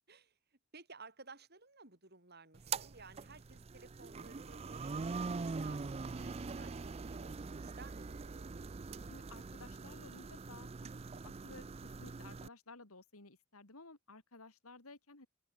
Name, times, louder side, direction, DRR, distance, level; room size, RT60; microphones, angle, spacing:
voice 1, 0.1-9.1, right 4 dB, 45° right, 7.9 m, -57 dB
sound 1, 2.5-12.5, right 4 dB, 30° right, 0.4 m, -43 dB
voice 2, 9.1-15.3, left 3 dB, 80° left, 3.4 m, -56 dB
open air
head